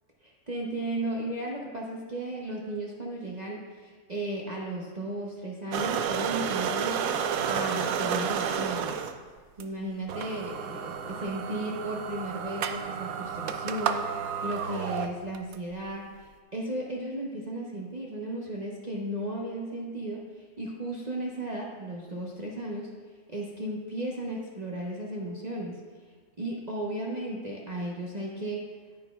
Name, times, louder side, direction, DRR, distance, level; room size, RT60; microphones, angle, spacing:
voice 1, 0.2-7.1 7.4-8.9 9.6-14.0 14.4-22.9 23.3-25.8 26.4-28.6, right 1 dB, 35° right, -3 dB, 0.8 m, -35 dB
sound 1, 5.7-9.1 9.6-9.7 10.1-15.6, right 7 dB, 70° right, 0.9 m, -31 dB
9.9 x 9.1 x 2.3 m, 1.5 s
omnidirectional pair, 1.7 m